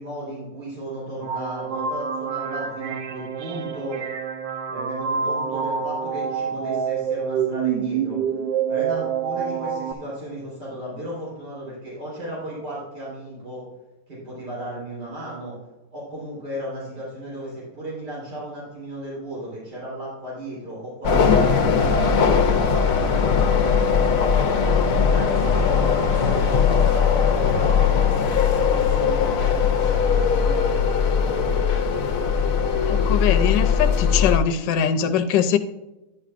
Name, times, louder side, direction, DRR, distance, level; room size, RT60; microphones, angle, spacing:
voice 1, 0.0-4.0 4.7-8.2 8.7-13.7 14.1-15.5 15.9-22.2 22.9-24.0 24.6-31.3, right 1 dB, 65° right, -7 dB, 4.5 m, -35 dB
sound 1, 1.2-9.9, right 7 dB, 90° right, 1.4 m, -27 dB
sound 2, 18.9-19.3 19.7-30.9 31.3-33.0, right 2 dB, 25° right, 2.5 m, -44 dB
sound 3, 21.0-34.4, left 6 dB, 60° left, 1.0 m, -20 dB
voice 2, 32.8-35.6, left 8 dB, 80° left, 8 dB, 1.2 m, -22 dB
11.0 x 10.5 x 2.5 m, 1.0 s
omnidirectional pair, 1.9 m